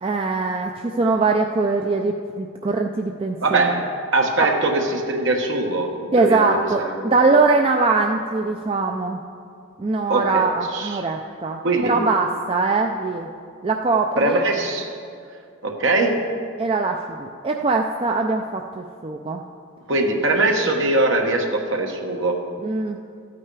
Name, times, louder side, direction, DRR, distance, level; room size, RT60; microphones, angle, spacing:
voice 1, 0.0-3.7 6.1-9.2 9.8-13.3 13.6-14.4 16.6-19.4 22.6-23.0, right 3 dB, 25° right, 2 dB, 0.4 m, -22 dB
voice 2, 3.4-7.2 10.1-11.0 11.6-11.9 14.2-14.9 15.6-16.2 19.9-22.4, right 2 dB, 55° right, 2 dB, 1.3 m, -22 dB
13.5 x 8.7 x 4.7 m, 2.3 s
head